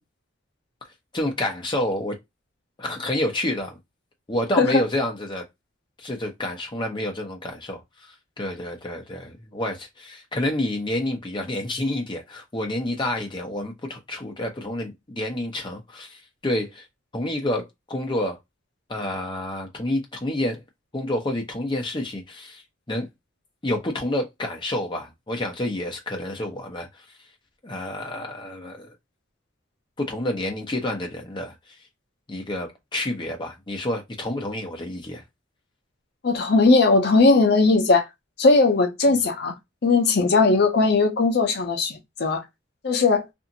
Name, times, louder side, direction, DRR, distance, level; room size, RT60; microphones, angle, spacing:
voice 1, 1.1-2.1 2.8-3.8 4.3-5.4 6.0-7.8 8.4-16.8 17.1-18.4 18.9-20.6 20.9-22.6 22.9-23.1 23.6-26.9 27.6-28.9 30.0-31.5 32.3-35.2, left 1 dB, 25° left, 0.7 m, -28 dB
voice 2, 36.2-38.1 38.4-39.5 39.8-42.4 42.8-43.2, left 3 dB, 60° left, 0.6 m, -18 dB
2.6 x 2.4 x 2.7 m
head